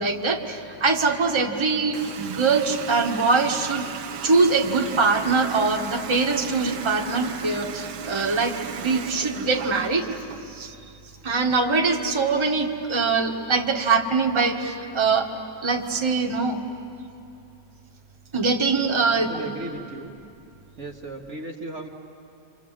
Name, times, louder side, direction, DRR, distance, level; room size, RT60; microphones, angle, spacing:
voice 1, 0.0-3.8 4.2-10.1 10.5-10.7 11.2-15.3 15.6-16.6 18.3-19.3, right 4 dB, 15° right, 1 dB, 1.4 m, -23 dB
Water tap faucet, 1.9-10.5, right 8 dB, 75° right, 1.5 m, -36 dB
voice 2, 19.0-20.2 20.8-21.9, right 2 dB, 45° right, 0 dB, 1.5 m, -36 dB
29.5 x 26.5 x 7.5 m, 2.6 s
omnidirectional pair, 1.8 m